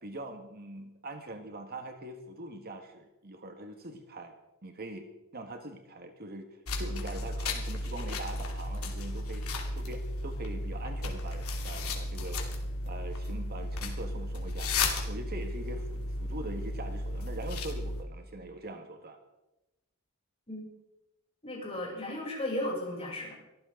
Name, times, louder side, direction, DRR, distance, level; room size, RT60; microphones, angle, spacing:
voice 1, 0.0-4.3 4.6-5.1 5.3-6.5 6.8-9.5 9.7-12.6 12.8-14.7 15.1-19.2, right 1 dB, 45° right, 5 dB, 1.8 m, -42 dB
sound 1, 6.7-18.0, left 2 dB, 90° left, 2.8 m, -34 dB
voice 2, 21.4-23.3, left 1 dB, 30° left, -4 dB, 7.9 m, -35 dB
23.5 x 14.5 x 4.0 m, 0.96 s
head